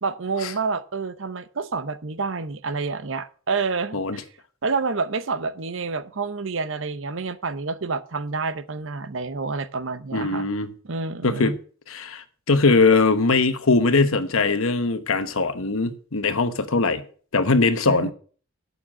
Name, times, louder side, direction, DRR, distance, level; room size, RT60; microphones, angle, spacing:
voice 1, 0.0-4.2 4.6-10.5 10.8-11.6 17.9-18.1, right 4 dB, 60° right, 0.8 m, -28 dB
voice 2, 10.1-10.7 11.2-11.5 11.9-17.0 17.3-18.1, left 3 dB, 70° left, 1.1 m, -21 dB
8.9 x 6.8 x 7.4 m
head